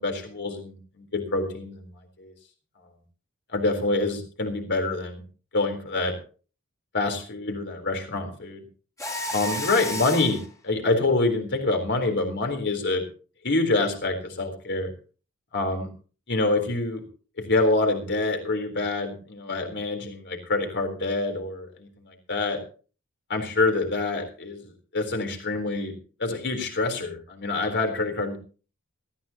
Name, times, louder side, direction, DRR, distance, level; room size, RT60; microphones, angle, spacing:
voice 1, 0.0-1.9 2.2-2.3 3.5-5.2 5.5-6.2 6.9-8.6 9.3-13.0 13.4-14.9 15.5-15.9 16.3-17.0 17.5-22.6 23.3-24.6 24.9-28.4, left 2 dB, 50° left, 5 dB, 3.9 m, -26 dB
Mechanisms, 9.0-10.5, left 1 dB, 15° left, 2.6 m, -31 dB
18.5 x 15.0 x 2.9 m, 0.37 s
head